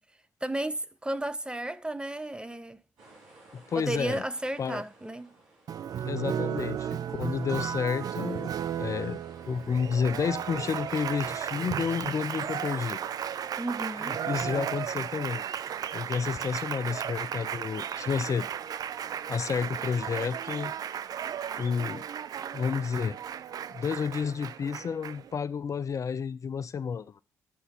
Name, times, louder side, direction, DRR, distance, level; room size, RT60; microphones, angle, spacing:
voice 1, 0.4-2.8 3.7-5.3 13.6-14.2, right 1 dB, 10° right, 0.6 m, -33 dB
sound 1, 3.0-11.3, right 2 dB, 70° right, 5.1 m, -57 dB
voice 2, 3.5-4.2 4.6-4.8 6.0-8.5 8.8-9.2 9.5-13.0 14.0-15.4 15.9-18.5 19.3-20.7 21.6-22.0 22.5-23.2 23.7-27.2, left 6 dB, 40° left, 0.4 m, -30 dB
Applause, 5.7-25.3, right 9 dB, 50° right, 0.4 m, -35 dB
sound 2, 11.9-17.3 17.6-22.8, right 2 dB, 35° right, 1.5 m, -60 dB
9.1 x 4.0 x 5.6 m
hypercardioid pair, 45°, 8 cm